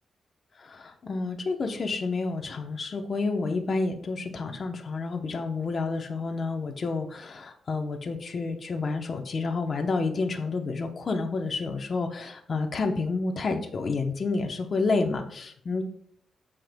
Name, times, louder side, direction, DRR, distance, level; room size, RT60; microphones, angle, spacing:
voice 1, 0.5-15.8, left 3 dB, 40° left, 4 dB, 0.8 m, -29 dB
14.0 x 5.1 x 2.2 m, 0.65 s
cardioid pair, 115°, 0 cm